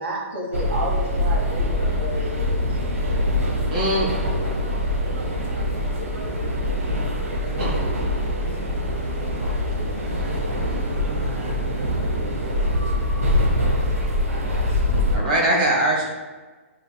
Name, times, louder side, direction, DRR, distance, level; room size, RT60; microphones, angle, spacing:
voice 1, 0.0-2.6, right 1 dB, 55° right, -2 dB, 1.3 m, -31 dB
sound 1, 0.5-15.2, left 1 dB, 80° right, 1.0 m, -24 dB
voice 2, 3.7-4.1 7.6-7.7 15.1-16.1, right 1 dB, 35° right, -4 dB, 1.4 m, -21 dB
voice 3, 8.8-11.5 15.0-15.1, left 1 dB, 10° right, -5 dB, 0.6 m, -46 dB
7.0 x 3.0 x 2.2 m, 1.3 s
hypercardioid pair, 180°, 8 cm